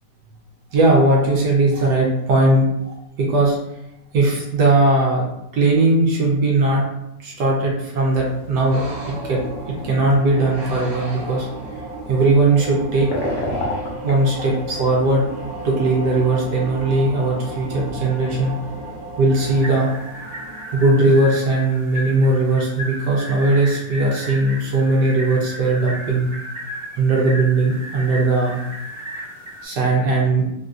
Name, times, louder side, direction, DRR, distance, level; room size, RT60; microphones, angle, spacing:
voice 1, 0.7-3.6 4.1-5.2 5.5-6.9 7.2-11.5 12.1-13.4 14.0-15.3 15.6-18.6 19.2-19.9 20.7-26.3 27.0-28.6 29.6-30.5, right 2 dB, 70° right, -2 dB, 1.2 m, -18 dB
sound 1, 8.0-19.7, left 1 dB, 75° left, 1.4 m, -35 dB
sound 2, 8.7-21.7, right 2 dB, 55° right, 1.0 m, -34 dB
sound 3, 19.3-29.6, equal, 10° left, 0.8 m, -35 dB
3.6 x 2.5 x 2.3 m, 0.87 s
omnidirectional pair, 1.9 m